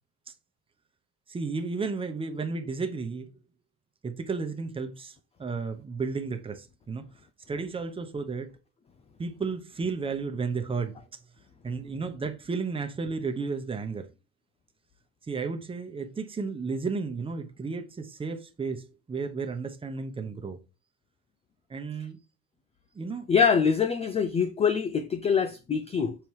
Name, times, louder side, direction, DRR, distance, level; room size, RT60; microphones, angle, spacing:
voice 1, 1.3-3.3 4.0-7.0 7.5-8.5 9.2-11.0 11.6-14.1 15.3-20.6 21.7-22.2 22.9-23.3, right 4 dB, 15° right, 0.8 m, -33 dB
voice 2, 23.3-26.2, left 6 dB, 20° left, 0.3 m, -24 dB
7.4 x 4.6 x 4.6 m
cardioid pair, 180°, 35 cm